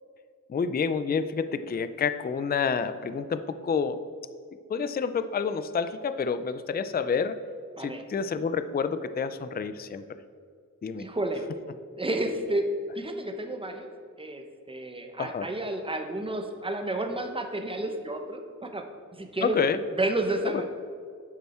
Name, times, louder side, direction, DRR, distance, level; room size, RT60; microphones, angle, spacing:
voice 1, 0.5-4.0 4.7-7.4 7.8-10.0 10.8-11.1 15.2-15.5 19.4-19.8 20.5-20.7, left 6 dB, 30° left, 12 dB, 0.4 m, -28 dB
voice 2, 10.9-11.4 12.0-12.6 13.0-13.9 14.2-18.8 19.2-19.6 19.9-20.7, right 1 dB, 15° right, 5 dB, 0.9 m, -31 dB
10.5 x 7.0 x 4.3 m, 2.2 s
wide cardioid pair, 125°, 31 cm